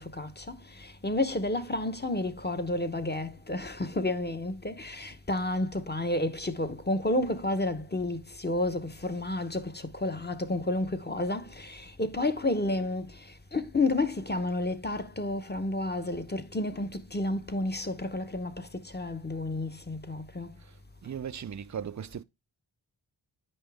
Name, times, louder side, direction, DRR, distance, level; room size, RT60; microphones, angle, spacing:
voice 1, 0.0-20.5, left 2 dB, 20° left, 0.9 m, -31 dB
voice 2, 21.0-22.2, right 8 dB, 40° right, 0.4 m, -37 dB
9.1 x 5.5 x 3.4 m
wide cardioid pair, 45°, 49 cm